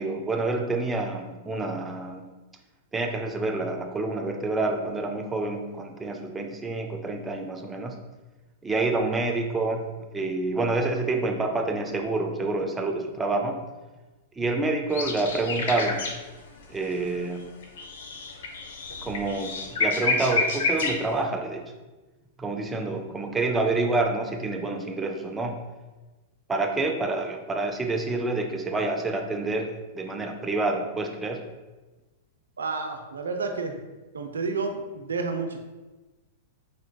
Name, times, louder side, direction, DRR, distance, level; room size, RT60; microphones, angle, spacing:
voice 1, 0.0-2.2 2.9-8.0 8.6-13.6 14.4-16.0 16.7-17.5 19.0-21.7 22.4-25.6 26.5-31.4, right 2 dB, 15° right, 3 dB, 0.4 m, -28 dB
sound 1, 14.9-16.6 16.9-21.2, left 3 dB, 75° left, 0.6 m, -29 dB
voice 2, 32.6-33.7 34.1-35.6, right 4 dB, 90° right, 5 dB, 0.4 m, -30 dB
4.0 x 3.2 x 2.2 m, 1.2 s
hypercardioid pair, 115°, 0 cm